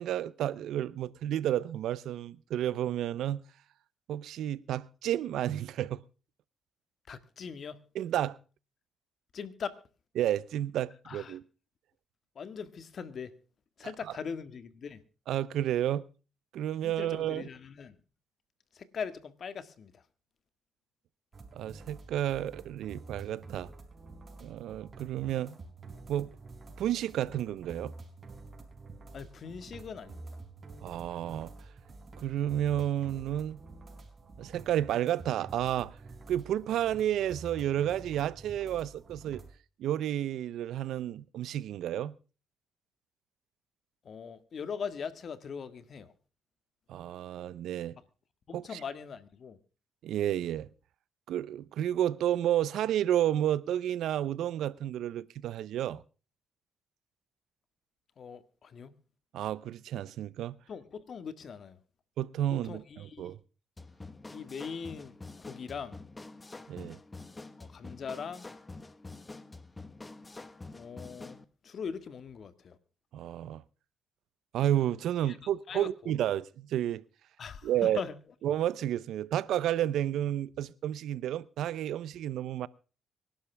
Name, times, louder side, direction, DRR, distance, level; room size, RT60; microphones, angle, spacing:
voice 1, 0.0-3.4 4.1-6.0 7.9-8.4 10.2-11.4 15.3-16.0 16.5-17.4 21.6-23.7 24.4-25.5 26.1-26.3 26.8-27.9 30.8-31.5 32.2-33.6 34.4-35.9 36.3-39.4 39.8-42.1 46.9-48.0 48.5-48.6 50.0-50.7 51.3-56.0 59.3-60.6 62.2-63.4 66.7-67.0 73.1-73.6 74.5-77.0 77.6-78.0 78.4-82.7, right 11 dB, 80° right, 0.7 m, -31 dB
voice 2, 7.1-7.8 9.3-9.8 11.0-11.4 12.4-13.3 13.8-15.0 16.8-18.0 18.7-20.0 29.1-30.4 44.0-46.1 48.5-49.6 58.2-59.0 60.7-61.8 62.6-63.4 64.3-66.0 67.6-68.5 70.7-72.8 75.2-75.4 75.7-76.1 77.4-78.2, left 6 dB, 50° left, 1.8 m, -41 dB
sound 1, 21.3-39.5, right 3 dB, 35° right, 4.1 m, -49 dB
sound 2, 63.8-71.4, left 3 dB, 20° left, 1.4 m, -47 dB
25.0 x 11.5 x 3.5 m
cardioid pair, 90°, 0 cm